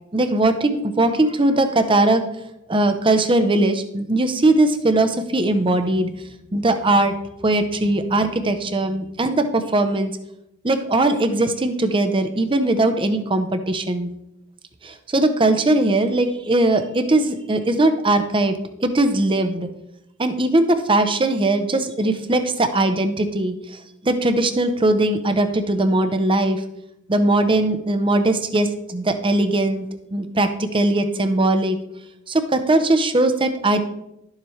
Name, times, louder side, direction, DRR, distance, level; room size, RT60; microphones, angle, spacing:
voice 1, 0.1-2.3 2.7-6.1 6.5-7.2 7.4-10.1 10.6-14.1 14.8-18.6 18.8-19.7 20.2-26.6 27.1-29.9 30.1-31.8 32.3-33.8, right 2 dB, 25° right, 8 dB, 0.8 m, -20 dB
11.5 x 7.3 x 3.2 m, 0.85 s
head